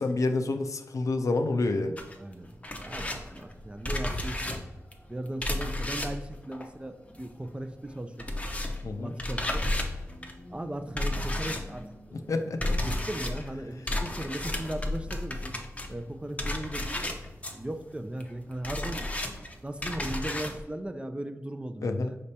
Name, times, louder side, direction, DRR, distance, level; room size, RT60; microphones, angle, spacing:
voice 1, 0.0-2.0 8.8-9.1 12.1-12.8 21.8-22.1, left 3 dB, 70° left, 7 dB, 0.4 m, -28 dB
sound 1, 2.0-7.5 7.7-20.6, left 1 dB, 25° left, 0.6 m, -33 dB
voice 2, 2.2-4.6 5.1-8.4 9.0-9.7 10.5-12.3 12.8-15.6 15.9-17.2 17.5-19.1 19.6-22.2, right 1 dB, 20° right, 8 dB, 0.4 m, -37 dB
5.0 x 3.4 x 2.8 m, 1.0 s
wide cardioid pair, 60°, 6 cm